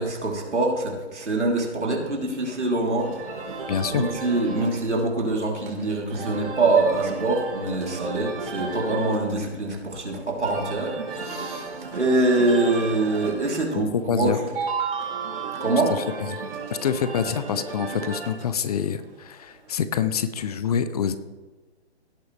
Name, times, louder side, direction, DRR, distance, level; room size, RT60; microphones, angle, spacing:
voice 1, 0.0-14.4 15.6-15.9, right 2 dB, 80° right, -1 dB, 3.5 m, -24 dB
sound 1, 3.0-19.7, right 4 dB, 50° right, 4.0 m, -34 dB
voice 2, 3.7-4.1 13.8-14.4 16.3-16.4 16.8-21.2, left 8 dB, 35° left, 12 dB, 0.6 m, -26 dB
18.0 x 8.5 x 3.3 m, 1.3 s
figure-of-eight pair, 135°, 34 cm